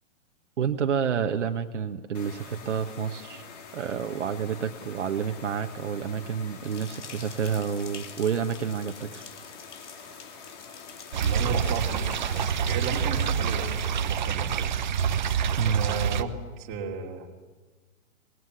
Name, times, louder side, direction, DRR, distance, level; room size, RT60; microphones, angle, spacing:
voice 1, 0.6-3.5 3.7-9.3 15.6-15.8, right 7 dB, 60° right, 5 dB, 1.6 m, -29 dB
sound 1, 2.1-14.2, left 5 dB, 30° left, 3.0 m, -46 dB
sound 2, 6.6-12.8, left 6 dB, 60° left, 2.8 m, -47 dB
sound 3, 11.1-16.2, right 7 dB, 35° right, 1.1 m, -27 dB
voice 2, 11.2-12.1 12.6-14.5 15.7-17.3, right 5 dB, 20° right, 1 dB, 2.8 m, -34 dB
25.5 x 21.0 x 10.0 m, 1.3 s
hypercardioid pair, 170°, 40 cm